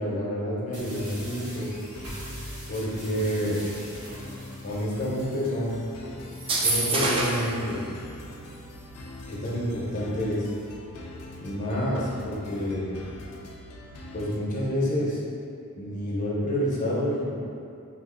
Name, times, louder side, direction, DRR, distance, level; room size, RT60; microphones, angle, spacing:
voice 1, 0.0-1.7 2.7-3.6 4.6-5.8 6.6-7.8 9.3-10.5 11.4-12.9 14.1-15.2 15.8-17.3, equal, 35° left, -6 dB, 0.7 m, -28 dB
sound 1, 0.7-5.7, equal, 75° right, 1.4 m, -41 dB
sound 2, 0.8-14.4, left 1 dB, 85° left, 0.4 m, -43 dB
sound 3, 6.4-7.5, right 2 dB, 25° right, 0.3 m, -25 dB
2.7 x 2.6 x 3.7 m, 2.5 s
head